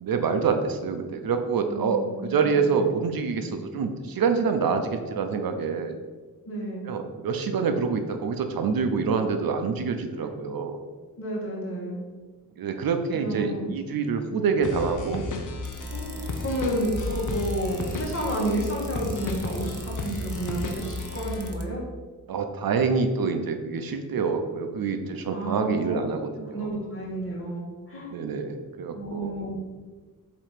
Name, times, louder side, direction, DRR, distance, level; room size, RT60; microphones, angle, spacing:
voice 1, 0.0-5.9 6.9-10.8 12.6-15.2 22.3-26.7 28.1-29.3, right 5 dB, 80° right, 6 dB, 0.7 m, -26 dB
voice 2, 1.7-2.6 6.5-6.9 11.2-12.0 13.1-13.7 15.9-21.9 25.3-26.0 26.5-28.1 28.9-29.6, right 1 dB, 40° left, -3 dB, 1.8 m, -31 dB
sound 1, 14.6-21.6, left 2 dB, 60° left, 0.8 m, -33 dB
sound 2, 15.6-21.6, right 6 dB, 45° right, 0.7 m, -44 dB
7.4 x 3.0 x 5.0 m, 1.3 s
wide cardioid pair, 160°, 35 cm